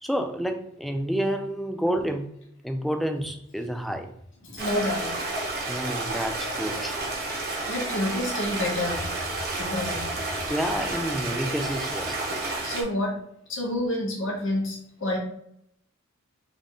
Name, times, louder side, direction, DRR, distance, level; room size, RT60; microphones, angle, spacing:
voice 1, 0.0-2.2 2.6-4.1 5.7-7.0 10.5-12.2, equal, ahead, 5 dB, 0.3 m, -29 dB
voice 2, 4.4-5.1 7.7-9.3 9.6-10.1 12.6-13.2 13.5-15.2, left 1 dB, 60° left, -1 dB, 1.2 m, -29 dB
Stream, 4.6-12.8, right 2 dB, 45° right, 0.8 m, -31 dB
3.5 x 2.4 x 3.7 m, 0.73 s
head